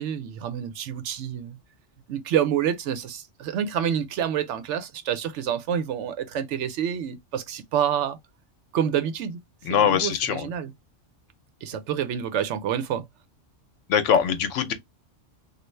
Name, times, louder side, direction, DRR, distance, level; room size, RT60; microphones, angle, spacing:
voice 1, 0.0-1.6 2.1-8.2 8.7-9.4 9.7-10.7 11.6-13.0, right 9 dB, 75° right, 0.9 m, -28 dB
voice 2, 9.6-10.5 13.9-14.7, left 8 dB, 85° left, 1.0 m, -22 dB
3.2 x 2.4 x 3.1 m
omnidirectional pair, 1.2 m